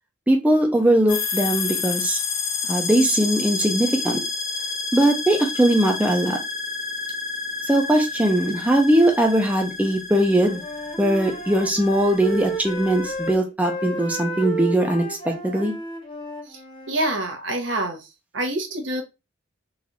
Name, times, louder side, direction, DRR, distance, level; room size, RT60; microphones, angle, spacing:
voice 1, 0.3-2.2 2.7-4.2 4.9-6.4 7.7-10.6 11.0-15.7, right 1 dB, 10° right, 1 dB, 0.6 m, -20 dB
sound 1, 1.1-13.4, left 4 dB, 50° left, 0.9 m, -30 dB
Wind instrument woodwind instrument, 10.2-17.0, right 2 dB, 25° left, 0.9 m, -33 dB
voice 2, 16.9-18.1 18.3-19.0, right 1 dB, 70° right, 3 dB, 1.0 m, -26 dB
3.9 x 2.5 x 3.0 m, 0.25 s
head